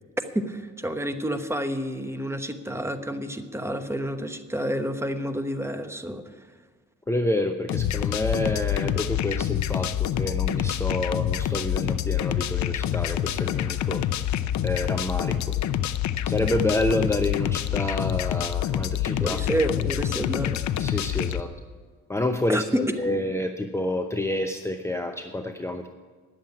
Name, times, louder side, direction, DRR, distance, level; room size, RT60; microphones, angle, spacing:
voice 1, 0.3-6.5 19.2-20.6 22.5-22.8, equal, 10° right, 8 dB, 1.0 m, -29 dB
voice 2, 7.1-14.0 14.6-15.6 16.3-19.4 20.8-21.5 22.1-25.9, left 1 dB, 10° left, 5 dB, 0.7 m, -28 dB
sound 1, 7.7-21.4, left 11 dB, 70° left, 0.6 m, -27 dB
10.5 x 7.6 x 9.5 m, 1.5 s
cardioid pair, 90°, 30 cm